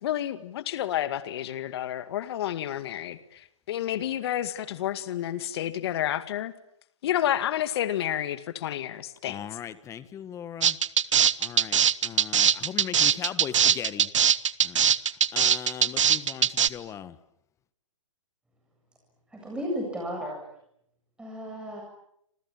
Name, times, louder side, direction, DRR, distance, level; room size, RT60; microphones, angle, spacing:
voice 1, 0.0-6.5 7.0-9.4, left 12 dB, 50° left, 11 dB, 2.1 m, -30 dB
voice 2, 9.3-10.8 11.4-14.1 14.6-14.9 15.3-17.2, left 9 dB, 20° left, 13 dB, 1.6 m, -38 dB
sound 1, 10.6-16.7, right 8 dB, 70° right, 1.3 m, -21 dB
voice 3, 19.3-20.5 21.2-21.8, equal, 5° right, 0 dB, 7.6 m, -34 dB
29.5 x 27.5 x 7.4 m, 0.76 s
hypercardioid pair, 130°, 17 cm